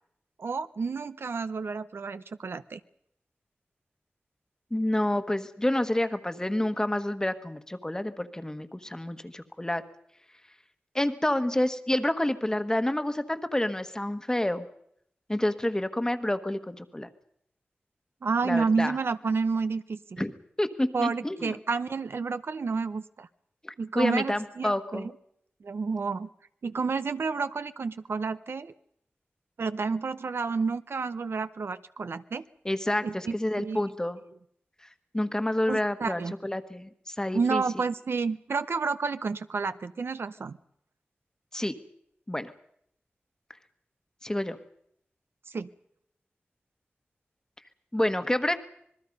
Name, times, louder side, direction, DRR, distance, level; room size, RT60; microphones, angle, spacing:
voice 1, 0.4-2.8 18.2-20.2 20.9-23.3 23.8-25.1 25.6-26.3 26.6-28.7 29.6-32.5 33.0-33.8 35.7-36.3 37.3-40.6 45.5-45.7, right 4 dB, 75° right, 12 dB, 0.7 m, -30 dB
voice 2, 4.7-9.8 10.9-14.7 15.3-17.1 18.4-18.9 20.2-20.3 20.6-21.5 23.6-25.1 32.6-34.2 35.1-37.6 41.5-41.7 42.3-42.5 44.2-44.6 47.9-48.6, left 1 dB, 15° left, 10 dB, 1.3 m, -28 dB
26.5 x 20.5 x 5.4 m, 0.71 s
wide cardioid pair, 85°, 4 cm